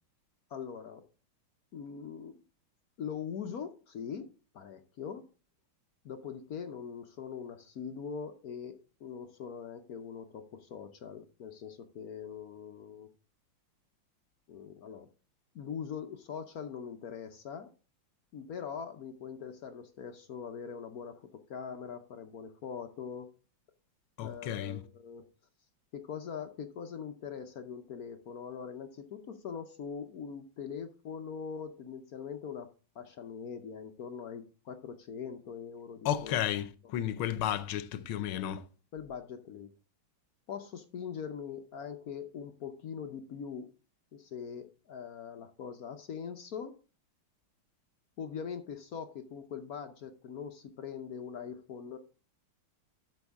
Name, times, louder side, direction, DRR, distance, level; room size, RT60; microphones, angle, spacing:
voice 1, 0.5-1.1 1.7-2.4 3.0-5.3 6.0-13.1 14.5-15.1 15.5-17.7 18.3-23.3 24.2-25.2 25.9-32.7 32.9-36.4 36.9-37.2 38.3-38.5 38.9-39.7 40.5-43.7 44.1-46.8 48.2-52.0, left 7 dB, 60° left, 1.0 m, -42 dB
voice 2, 24.2-24.8 36.0-38.6, left 11 dB, 85° left, 1.6 m, -33 dB
12.0 x 6.2 x 3.5 m
omnidirectional pair, 2.3 m